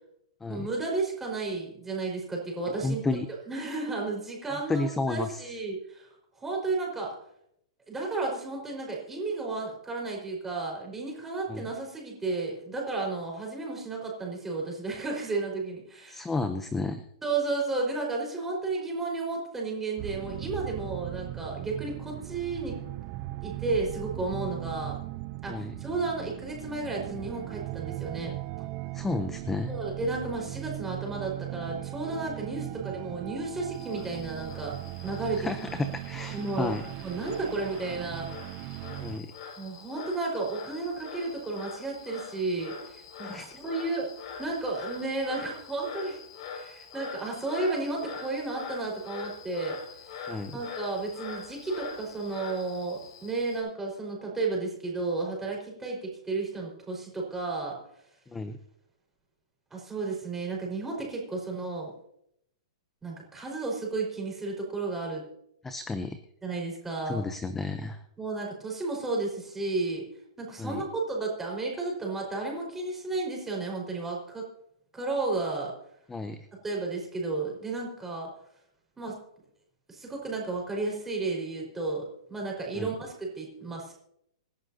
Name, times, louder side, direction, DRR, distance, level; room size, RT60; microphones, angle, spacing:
voice 1, 0.5-3.0 3.5-6.1 6.4-7.1 7.9-16.3 17.2-22.8 23.4-25.0 25.4-28.3 29.7-34.8 35.0-35.5 36.3-36.7 37.0-38.3 39.6-44.1 44.4-46.2 46.5-49.8 50.5-57.8 59.7-61.9 63.0-65.2 66.4-67.2 68.2-70.0 70.4-74.4 74.9-75.7 76.6-78.3 79.0-79.2 79.9-83.9, right 3 dB, 10° right, -2 dB, 4.9 m, -33 dB
voice 2, 2.8-3.3 4.5-5.4 11.5-11.6 16.1-17.0 25.5-25.7 28.9-29.7 35.4-35.7 36.1-36.8 39.0-39.3 43.2-43.5 50.3-50.6 58.3-58.6 65.6-66.2 67.1-68.0 70.6-70.8 76.1-76.5 82.7-82.9, left 3 dB, 10° left, 9 dB, 0.7 m, -32 dB
sound 1, 20.0-39.2, right 19 dB, 30° right, 0.5 m, -38 dB
Frog, 33.7-53.6, left 5 dB, 45° left, 5.8 m, -44 dB
27.0 x 11.0 x 2.8 m, 0.74 s
hypercardioid pair, 160°, 3 cm